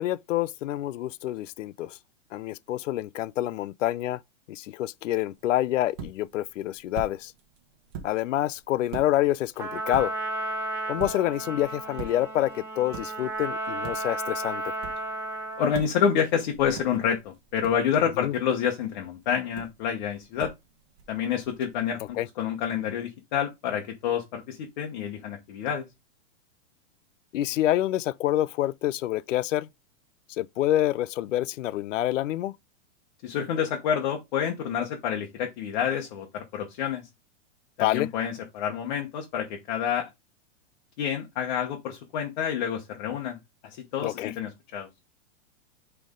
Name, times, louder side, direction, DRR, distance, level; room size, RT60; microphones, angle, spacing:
voice 1, 0.0-2.0 2.3-4.2 4.5-7.3 8.0-10.1 10.9-14.6 18.2-18.3 22.2-22.3 27.3-29.7 30.4-32.5 37.8-38.1 44.0-44.3, left 14 dB, 85° left, 0.6 m, -27 dB
sound 1, 5.3-22.1, right 7 dB, 30° right, 1.4 m, -46 dB
Trumpet, 9.6-15.8, right 2 dB, 5° right, 0.9 m, -33 dB
voice 2, 15.6-20.5 21.1-25.9 33.2-37.1 37.8-40.1 41.0-44.9, left 8 dB, 40° left, 1.1 m, -28 dB
9.1 x 3.4 x 3.7 m
supercardioid pair, 170°, 37 cm